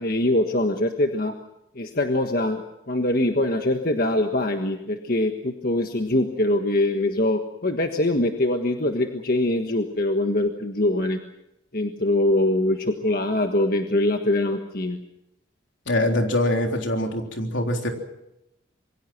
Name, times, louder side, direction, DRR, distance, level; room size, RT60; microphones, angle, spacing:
voice 1, 0.0-1.3 1.7-2.6 2.9-11.2 11.7-15.0, left 1 dB, 50° left, 4 dB, 1.5 m, -23 dB
voice 2, 15.9-17.9, left 1 dB, 75° left, 3 dB, 3.7 m, -23 dB
27.0 x 23.0 x 6.1 m, 0.84 s
head